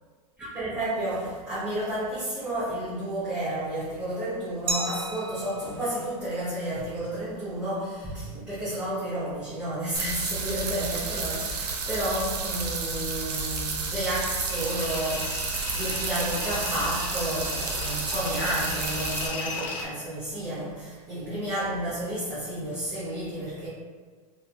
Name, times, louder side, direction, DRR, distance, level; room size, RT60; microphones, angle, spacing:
voice 1, 0.4-23.7, right 1 dB, 5° right, -12 dB, 0.7 m, -31 dB
Glass, 4.7-7.4, right 1 dB, 30° right, 0.4 m, -35 dB
sound 1, 9.9-19.3, right 4 dB, 80° right, 0.5 m, -31 dB
Tools, 14.5-19.9, left 3 dB, 50° left, 0.7 m, -36 dB
2.6 x 2.2 x 2.6 m, 1.5 s
hypercardioid pair, 125°, 20 cm